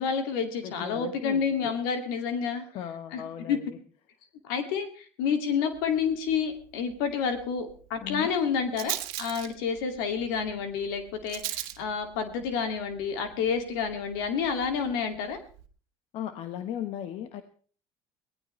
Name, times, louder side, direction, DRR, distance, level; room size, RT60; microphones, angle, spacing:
voice 1, 0.0-2.6 3.1-3.2 3.5-3.6 4.5-15.4, left 6 dB, 85° left, 6 dB, 2.5 m, -29 dB
voice 2, 0.6-1.7 2.6-3.8 8.0-8.3 16.1-17.4, left 10 dB, 65° left, 8 dB, 1.4 m, -37 dB
Rattle, 5.7-15.7, right 17 dB, 80° right, 1.6 m, -42 dB
23.0 x 17.0 x 3.3 m, 0.43 s
supercardioid pair, 85°, 11 cm